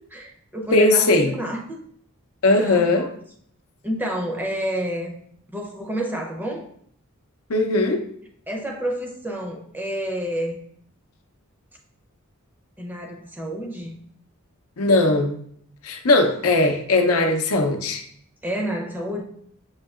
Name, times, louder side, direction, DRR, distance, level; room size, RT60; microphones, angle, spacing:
voice 1, 0.1-1.8 2.6-3.1 3.8-5.1 5.5-6.7 8.5-10.6 12.8-14.0 18.4-19.2, equal, 10° right, 0 dB, 0.6 m, -29 dB
voice 2, 0.7-1.3 2.4-3.0 7.5-8.0 14.8-15.4 15.8-18.0, left 2 dB, 75° left, 4 dB, 0.6 m, -19 dB
6.4 x 2.8 x 2.3 m, 0.63 s
head